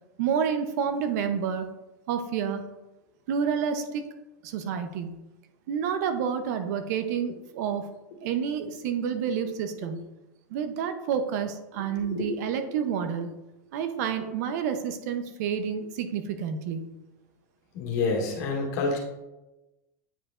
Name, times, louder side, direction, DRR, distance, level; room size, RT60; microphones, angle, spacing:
voice 1, 0.2-1.7 2.1-2.6 3.3-4.0 4.4-5.2 5.7-7.9 8.2-10.1 10.5-13.4 13.7-17.0, right 7 dB, 60° right, 8 dB, 0.7 m, -29 dB
voice 2, 17.7-19.0, left 3 dB, 65° left, -1 dB, 1.9 m, -27 dB
8.9 x 4.9 x 2.4 m, 1.0 s
supercardioid pair, 155°, 10 cm